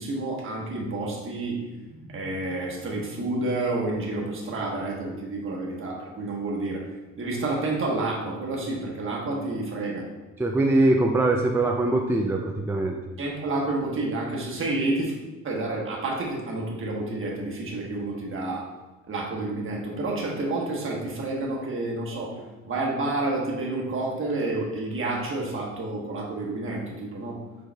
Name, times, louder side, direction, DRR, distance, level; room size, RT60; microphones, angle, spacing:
voice 1, 0.0-1.6 1.9-6.8 7.2-10.1 13.2-15.1 15.4-18.7 19.1-22.3 22.6-27.4, right 2 dB, 45° right, -2 dB, 1.2 m, -29 dB
voice 2, 10.4-13.0, right 2 dB, 10° right, 1 dB, 0.3 m, -22 dB
4.7 x 4.6 x 2.3 m, 1.2 s
cardioid pair, 90°, 30 cm